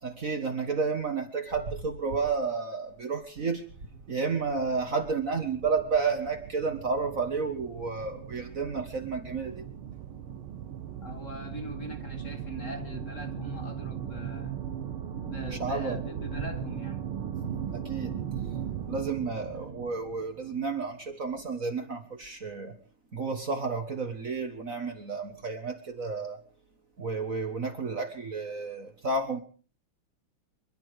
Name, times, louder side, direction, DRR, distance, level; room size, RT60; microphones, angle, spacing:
voice 1, 0.0-3.6 4.1-9.6 15.4-16.0 17.4-18.2 18.9-22.8 23.1-26.4 27.0-29.4, right 4 dB, 40° right, 1.7 m, -31 dB
sound 1, 3.8-20.9, right 9 dB, 75° right, 2.0 m, -38 dB
voice 2, 11.0-14.6 15.2-17.0 19.5-19.8, left 1 dB, 35° left, 2.2 m, -41 dB
26.0 x 11.5 x 4.9 m
omnidirectional pair, 2.4 m